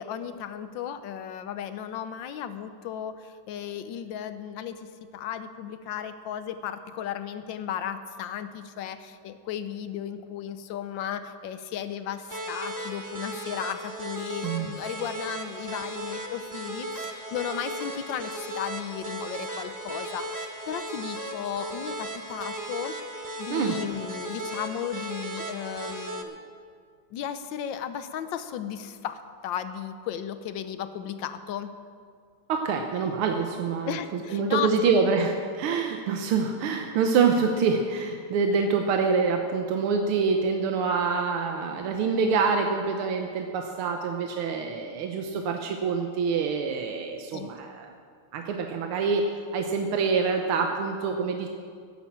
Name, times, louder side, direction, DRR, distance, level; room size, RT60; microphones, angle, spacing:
voice 1, 0.0-23.0 23.4-26.4 27.1-31.7 33.9-35.0 47.3-47.5, left 9 dB, 70° left, 10 dB, 1.3 m, -35 dB
sound 1, 12.3-26.2, right 1 dB, 25° right, 0.4 m, -36 dB
voice 2, 32.5-47.9 48.3-51.5, right 5 dB, 85° right, 4 dB, 1.8 m, -26 dB
11.5 x 10.0 x 7.3 m, 2.1 s
omnidirectional pair, 2.3 m